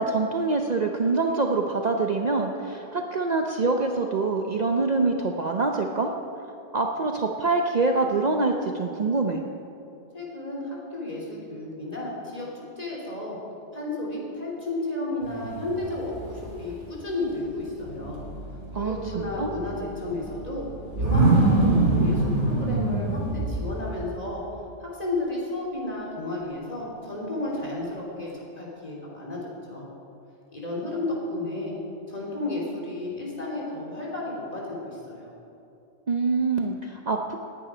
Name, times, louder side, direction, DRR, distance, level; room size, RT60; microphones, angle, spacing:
voice 1, 0.0-6.1 6.7-9.4 18.7-19.5 36.1-37.4, right 3 dB, 45° right, 2 dB, 0.7 m, -25 dB
voice 2, 10.1-13.4 13.7-18.2 18.8-20.6 21.0-24.4 24.8-29.9 30.5-31.7 32.1-35.3, left 2 dB, 35° left, -4 dB, 3.4 m, -32 dB
sound 1, 15.2-16.7 16.9-24.0, right 2 dB, 75° right, 3.2 m, -26 dB
19.0 x 9.9 x 5.0 m, 2.7 s
omnidirectional pair, 1.2 m